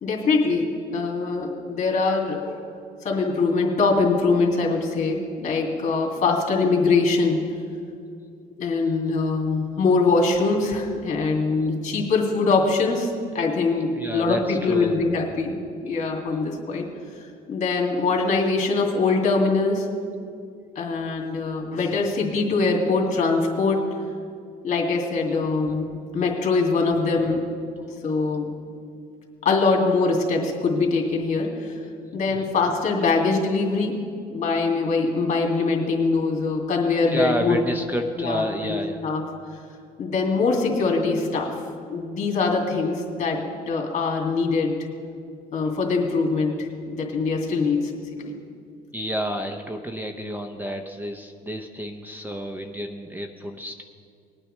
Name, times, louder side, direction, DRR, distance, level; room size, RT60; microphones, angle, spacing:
voice 1, 0.0-2.7 3.0-7.5 8.6-16.9 17.5-19.9 20.8-23.8 24.6-27.5 28.0-28.6 29.4-31.8 32.1-34.0 34.3-37.6 38.2-39.2 40.0-41.6 41.9-44.8 45.5-47.9 48.2-48.3, left 3 dB, 45° left, 0 dB, 2.3 m, -23 dB
voice 2, 13.9-15.0 37.1-39.0 48.9-53.8, equal, 10° right, 5 dB, 0.6 m, -30 dB
20.5 x 8.9 x 3.3 m, 2.3 s
cardioid pair, 110°, 17 cm